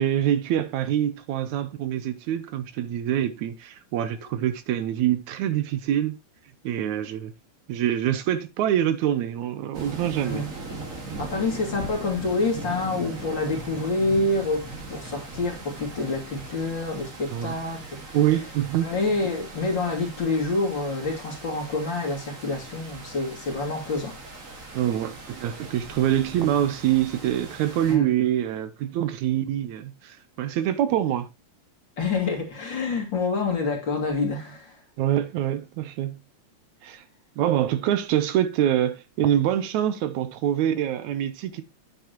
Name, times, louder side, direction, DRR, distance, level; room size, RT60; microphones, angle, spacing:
voice 1, 0.0-6.2 6.6-7.3 7.7-10.4 17.3-17.6 18.1-18.9 24.7-31.3 35.0-36.2 36.8-37.0 37.4-41.6, right 11 dB, 75° right, 2.2 m, -25 dB
sound 1, 9.7-28.0, right 2 dB, 30° right, 2.0 m, -40 dB
voice 2, 11.2-18.2 18.8-24.2 27.9-28.1 32.0-34.8, left 3 dB, 40° left, 3.0 m, -27 dB
9.2 x 8.5 x 3.0 m
omnidirectional pair, 3.4 m